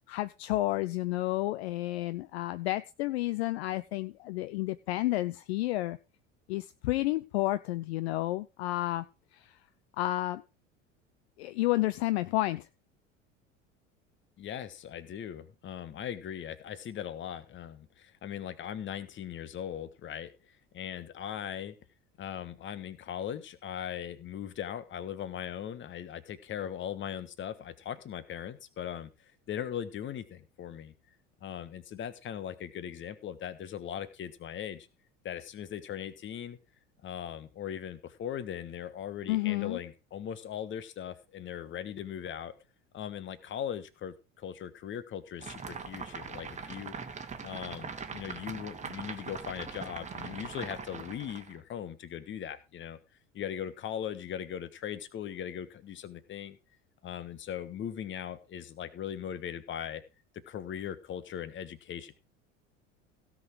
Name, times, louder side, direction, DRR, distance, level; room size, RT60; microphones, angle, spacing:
voice 1, 0.1-6.0 6.5-9.0 9.3-9.6 10.0-10.4 11.4-12.7 39.3-39.8, left 17 dB, 55° left, 15 dB, 0.6 m, -31 dB
voice 2, 14.4-20.3 20.7-21.7 22.2-30.9 31.4-34.9 35.2-36.6 37.0-42.5 42.9-46.9 47.4-53.0 53.3-56.6 57.0-60.0 60.5-62.1, left 9 dB, 30° left, 15 dB, 1.3 m, -39 dB
sound 1, 45.4-51.6, right 5 dB, 20° right, 1.5 m, -41 dB
16.5 x 6.3 x 4.8 m, 0.30 s
figure-of-eight pair, 70°, 38 cm